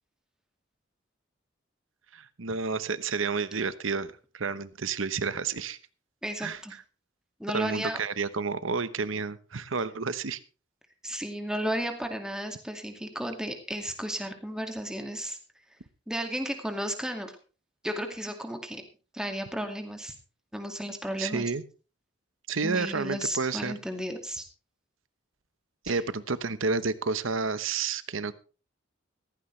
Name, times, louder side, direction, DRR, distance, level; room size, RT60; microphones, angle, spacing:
voice 1, 2.1-5.8 6.4-6.6 7.5-10.4 21.2-21.6 22.5-23.8 25.8-28.3, right 4 dB, 90° right, 15 dB, 1.0 m, -30 dB
voice 2, 6.2-6.7 7.4-8.0 11.0-15.4 16.1-17.3 17.8-18.8 19.1-20.1 20.5-21.5 22.6-24.5 25.9-26.0, equal, 5° right, 5 dB, 2.1 m, -33 dB
15.5 x 15.0 x 3.3 m, 0.35 s
head